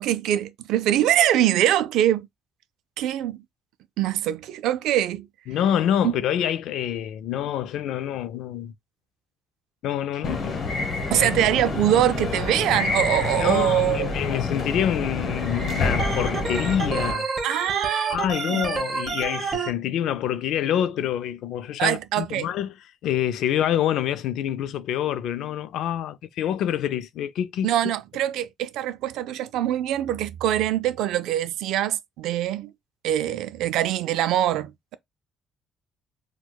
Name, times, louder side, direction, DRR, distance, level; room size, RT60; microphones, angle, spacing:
voice 1, 0.0-2.3 3.0-3.4 4.0-5.3 6.0-6.1 11.1-14.1 17.4-18.2 18.5-18.6 21.8-22.5 27.6-32.7 33.0-35.0, right 12 dB, 85° right, 0.3 m, -23 dB
voice 2, 5.5-8.7 9.8-10.7 11.1-11.3 13.4-17.3 18.1-22.7 23.0-27.7, left 10 dB, 75° left, 0.3 m, -26 dB
sound 1, 10.2-17.1, left 3 dB, 40° left, 1.1 m, -27 dB
Organ, 16.0-19.7, right 4 dB, 35° right, 0.8 m, -29 dB
4.5 x 2.2 x 2.2 m
cardioid pair, 140°, 0 cm